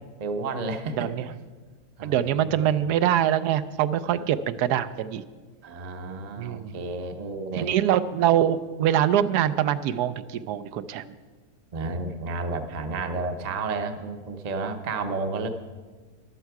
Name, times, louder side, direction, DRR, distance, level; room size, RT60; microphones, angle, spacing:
voice 1, 0.2-1.1 2.0-2.6 4.1-4.4 5.6-7.7 11.7-15.5, right 3 dB, 40° right, 7 dB, 0.6 m, -31 dB
voice 2, 1.0-1.3 2.0-5.2 6.4-6.8 7.6-11.1, right 10 dB, 85° right, 13 dB, 1.1 m, -24 dB
13.5 x 11.5 x 4.7 m, 1.4 s
omnidirectional pair, 1.6 m